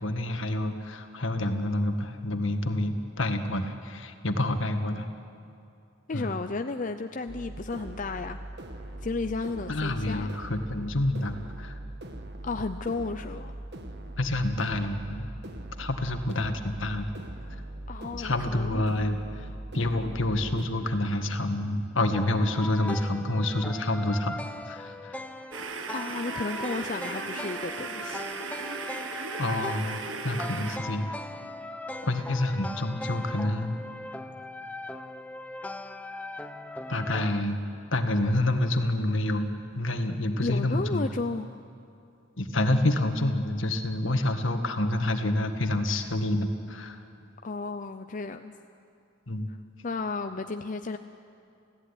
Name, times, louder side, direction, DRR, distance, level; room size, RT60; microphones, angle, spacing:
voice 1, 0.0-5.1 6.1-6.3 9.7-11.7 14.2-15.3 15.8-17.1 18.2-19.5 19.7-24.4 24.7-25.2 29.4-31.2 32.0-33.7 36.9-37.6 37.9-41.0 42.4-47.0 49.3-49.5, left 1 dB, 70° left, 6 dB, 1.9 m, -28 dB
voice 2, 6.1-8.4 9.0-10.3 12.4-13.6 17.9-18.8 25.9-28.3 29.0-29.3 40.4-41.6 47.4-48.5 49.8-51.0, left 3 dB, 40° left, 7 dB, 0.6 m, -33 dB
sound 1, 7.3-20.7, right 1 dB, 55° right, 1.8 m, -41 dB
sound 2, 22.1-37.4, left 1 dB, 5° left, 0.8 m, -39 dB
sound 3, 25.5-30.8, right 5 dB, 70° right, 1.5 m, -37 dB
29.0 x 16.5 x 10.0 m, 2.6 s
head